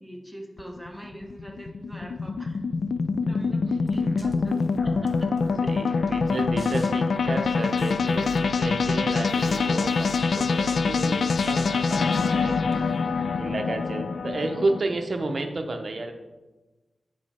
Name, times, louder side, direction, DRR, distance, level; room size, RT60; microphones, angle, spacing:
voice 1, 0.0-2.6 3.1-5.4, equal, ahead, 0 dB, 0.9 m, -43 dB
sound 1, 0.6-14.8, left 4 dB, 55° left, 0.3 m, -25 dB
sound 2, 3.9-13.5, left 1 dB, 30° left, 0.8 m, -43 dB
voice 2, 5.6-12.0 12.4-12.9 13.4-16.1, right 2 dB, 40° right, 5 dB, 0.8 m, -31 dB
8.0 x 5.1 x 4.3 m, 1.2 s
wide cardioid pair, 170°, 0 cm